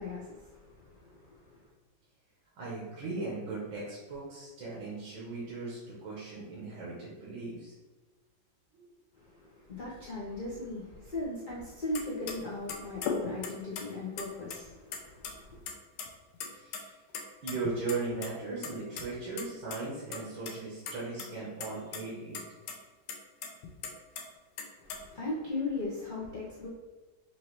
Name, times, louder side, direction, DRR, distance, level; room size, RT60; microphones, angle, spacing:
voice 1, 0.0-1.7 9.2-15.6 24.8-26.7, left 2 dB, 50° left, -7 dB, 0.5 m, -38 dB
voice 2, 2.6-7.7 8.7-8.8 16.5-16.8 17.4-22.4, right 3 dB, 90° right, -6 dB, 1.8 m, -38 dB
sound 1, 11.9-12.0 12.3-12.4 12.7-13.8 14.2-15.0 15.2-15.3 15.7-16.1 16.3-16.8 17.1-18.3 18.6-19.0 19.4-19.5 19.7-19.8 20.1-20.5 20.9-21.3 21.6-22.0 22.3-22.4 22.7-22.8 23.1-24.2 24.6-25.0, left 5 dB, 75° left, 1.2 m, -37 dB
5.4 x 2.6 x 3.0 m, 1.3 s
omnidirectional pair, 2.1 m